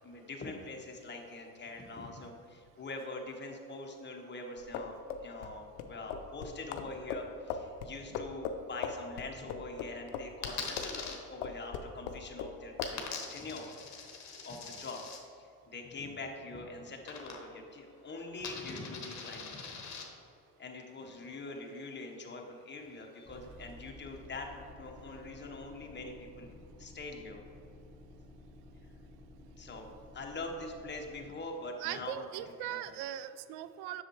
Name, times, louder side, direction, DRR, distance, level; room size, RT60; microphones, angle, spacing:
voice 1, 0.0-13.7 14.4-15.0 15.7-19.8 20.6-26.5 26.8-27.4 29.6-29.9 30.1-32.3 32.7-33.0, left 2 dB, 25° left, 1 dB, 1.3 m, -44 dB
sound 1, 4.6-11.1 11.4-12.5 12.8-13.0, left 7 dB, 80° left, 0.6 m, -39 dB
Coin (dropping), 10.4-11.2 12.8-15.2 17.1-17.7 18.0-20.0, left 5 dB, 45° left, 1.4 m, -42 dB
sound 2, 23.3-31.3, left 1 dB, ahead, 1.3 m, -53 dB
voice 2, 29.7-30.0 31.8-34.0, right 12 dB, 70° right, 13 dB, 0.5 m, -40 dB
7.6 x 6.5 x 3.2 m, 2.5 s
supercardioid pair, 75°, 40 cm